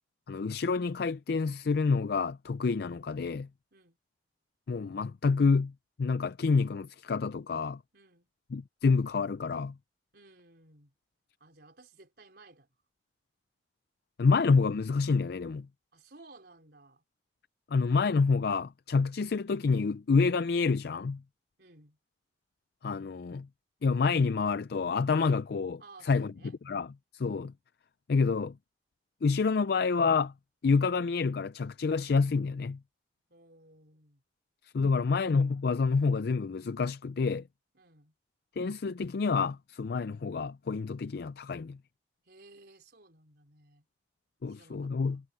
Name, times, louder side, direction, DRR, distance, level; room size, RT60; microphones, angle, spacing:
voice 1, 0.3-3.5 4.7-5.7 6.0-7.8 8.5-9.7 14.2-15.7 17.7-21.2 22.8-23.5 23.8-26.3 26.7-26.9 27.1-27.5 28.1-28.6 29.2-30.3 30.6-32.8 34.6-37.4 38.6-41.8 44.4-45.2, left 4 dB, 60° left, 0.4 m, -28 dB
voice 2, 7.9-8.3 10.1-10.9 11.4-12.7 15.9-17.0 21.6-22.0 25.8-26.5 33.3-34.2 34.9-35.1 37.7-38.1 42.2-43.9 44.5-45.2, right 3 dB, 65° right, 4.4 m, -57 dB
head